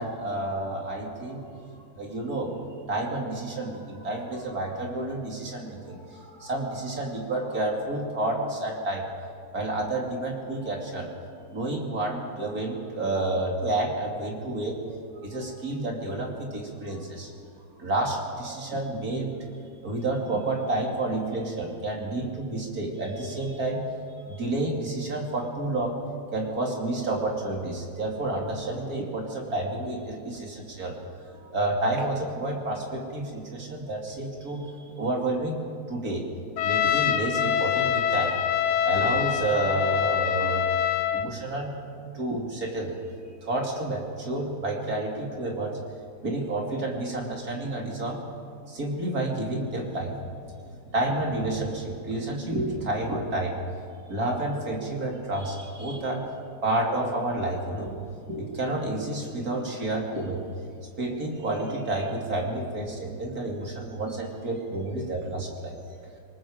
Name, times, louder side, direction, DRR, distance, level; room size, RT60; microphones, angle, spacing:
voice 1, 0.0-1.6 2.0-2.6 2.8-9.0 9.5-11.1 11.5-17.3 17.8-19.3 19.8-26.0 26.3-30.9 31.3-35.6 35.9-36.2 36.6-38.4 38.8-40.7 41.1-41.7 42.1-42.9 43.4-45.9 46.2-48.2 48.7-50.1 50.9-53.6 54.1-56.2 56.6-57.9 58.3-60.4 61.0-65.8, right 2 dB, 45° right, 0 dB, 3.1 m, -30 dB
Trumpet, 36.6-41.3, left 9 dB, 85° left, 1.8 m, -25 dB
26.5 x 19.0 x 5.1 m, 2.3 s
omnidirectional pair, 2.3 m